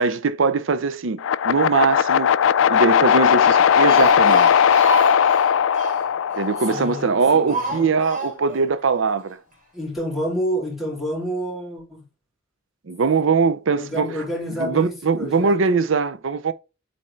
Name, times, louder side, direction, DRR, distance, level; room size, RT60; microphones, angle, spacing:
voice 1, 0.0-4.7 6.4-9.4 12.9-14.2 14.6-16.5, right 4 dB, 70° right, 0.6 m, -21 dB
sound 1, 1.2-7.3, left 8 dB, 70° left, 0.4 m, -18 dB
Speech, 3.5-7.1 7.5-8.6 8.9-9.0 9.3-9.4, equal, 40° right, 3.1 m, -28 dB
voice 2, 6.7-7.9 9.7-12.0 13.8-15.6, equal, ahead, 3.4 m, -29 dB
8.5 x 4.3 x 3.2 m
head